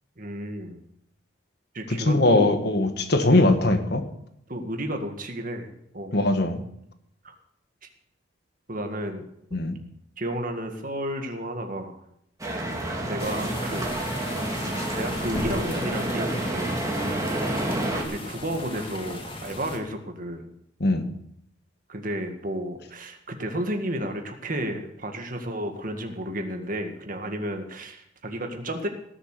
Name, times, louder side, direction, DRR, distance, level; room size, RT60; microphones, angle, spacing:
voice 1, 0.2-0.8 1.7-2.6 4.5-6.2 7.2-7.3 7.8-7.9 8.7-9.2 9.5-9.6 10.2-12.0 13.0-14.0 14.9-16.8 18.1-20.5 21.9-28.9, right 1 dB, 45° right, 5 dB, 1.9 m, -32 dB
voice 2, 2.0-4.0 6.1-6.6 9.5-9.7 20.8-21.1, left 2 dB, 60° left, 7 dB, 1.6 m, -21 dB
sound 1, 12.4-18.0, right 1 dB, 20° right, 2.3 m, -29 dB
sound 2, 13.2-19.8, left 1 dB, 30° left, 2.2 m, -37 dB
18.5 x 7.4 x 6.8 m, 0.75 s
head